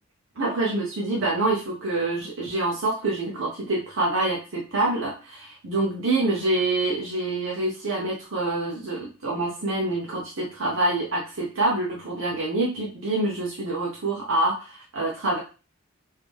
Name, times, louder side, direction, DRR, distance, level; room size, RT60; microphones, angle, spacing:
voice 1, 0.4-15.4, right 2 dB, 65° right, -3 dB, 0.8 m, -26 dB
3.4 x 2.7 x 3.5 m, 0.33 s
head